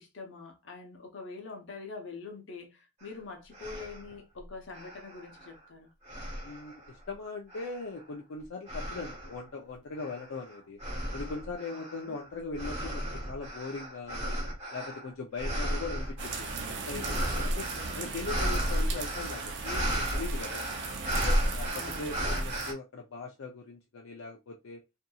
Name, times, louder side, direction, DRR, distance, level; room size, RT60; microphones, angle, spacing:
voice 1, 0.0-5.9 11.7-12.2 17.5-18.1 21.7-22.5, left 4 dB, 70° left, 0.8 m, -45 dB
sound 1, 3.0-3.1 3.5-4.1 4.7-5.6 6.1-6.9 7.5-8.0 8.7-9.4 10.0-22.7, equal, 30° right, 1.1 m, -34 dB
voice 2, 6.4-10.8 11.1-14.4 14.7-17.7 17.9-20.6 21.1-24.8, left 3 dB, 90° left, 0.5 m, -40 dB
sound 2, 16.2-22.7, right 4 dB, 60° right, 0.5 m, -38 dB
2.7 x 2.6 x 2.3 m
head